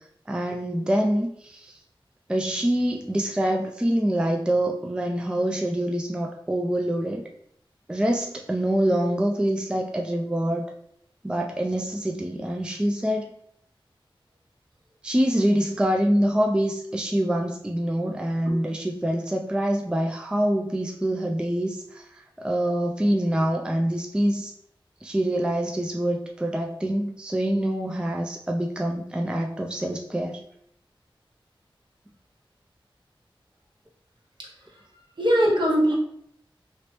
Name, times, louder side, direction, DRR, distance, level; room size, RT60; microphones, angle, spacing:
voice 1, 0.3-1.8 2.3-7.3 7.9-10.6 11.2-13.3 15.0-22.1 22.4-24.5 25.0-30.4, right 1 dB, 10° right, 1 dB, 0.3 m, -25 dB
voice 2, 34.4-34.8 35.2-35.9, equal, 60° right, -3 dB, 1.0 m, -22 dB
2.9 x 2.9 x 3.1 m, 0.70 s
wide cardioid pair, 70°, 9 cm